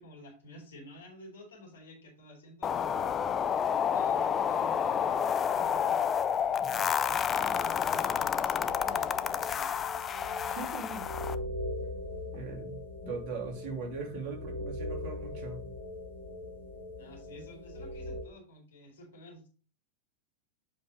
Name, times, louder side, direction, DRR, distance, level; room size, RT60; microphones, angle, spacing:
voice 1, 0.0-3.3 3.9-10.0 17.0-19.5, left 1 dB, 60° left, -1 dB, 3.9 m, -51 dB
sound 1, 2.6-11.4, left 8 dB, 25° left, 0.5 m, -29 dB
voice 2, 6.6-6.9 10.4-11.1 12.3-15.7, right 4 dB, 40° right, 0 dB, 3.0 m, -40 dB
sound 2, 8.7-18.2, left 1 dB, 80° left, 1.9 m, -40 dB
7.7 x 5.4 x 3.9 m, 0.37 s
figure-of-eight pair, 90°, 0 cm